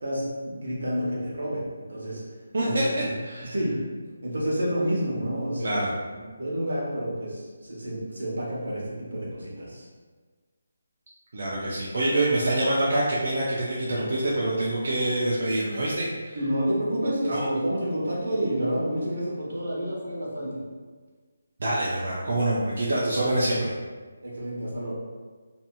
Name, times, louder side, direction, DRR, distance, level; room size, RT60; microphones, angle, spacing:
voice 1, 0.0-2.2 2.6-2.9 3.4-3.7 4.2-5.8 6.1-9.9 16.3-20.6 24.2-24.9, equal, 80° right, -4 dB, 1.0 m, -29 dB
voice 2, 2.5-2.8 3.2-3.5 5.6-5.9 11.3-16.4 17.3-17.5 21.6-23.7, right 1 dB, 55° right, -6 dB, 0.5 m, -26 dB
2.7 x 2.7 x 2.3 m, 1.4 s
hypercardioid pair, 170°, 0 cm